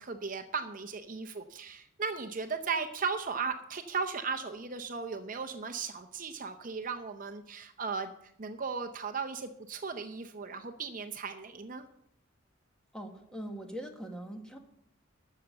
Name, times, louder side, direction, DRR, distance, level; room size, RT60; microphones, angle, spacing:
voice 1, 0.0-8.1 8.4-11.9, right 5 dB, 40° right, 7 dB, 0.7 m, -36 dB
voice 2, 12.9-14.6, equal, 5° left, 3 dB, 1.4 m, -41 dB
13.0 x 6.8 x 7.0 m, 0.74 s
head